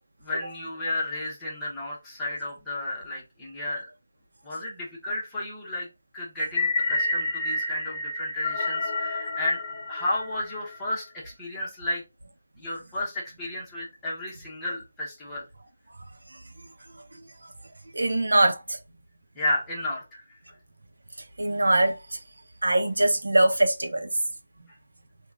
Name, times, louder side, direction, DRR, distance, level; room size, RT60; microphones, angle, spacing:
voice 1, 0.2-3.8 4.4-5.9 6.1-9.6 9.9-12.0 12.6-15.5 19.3-20.2, left 1 dB, 5° left, 1.0 m, -32 dB
sound 1, 6.5-10.8, left 2 dB, 30° left, 0.7 m, -29 dB
voice 2, 17.1-17.5 17.9-18.8 21.4-22.2 22.6-24.1, right 1 dB, 90° right, 0.7 m, -23 dB
3.0 x 2.3 x 3.6 m
figure-of-eight pair, 170°, 0 cm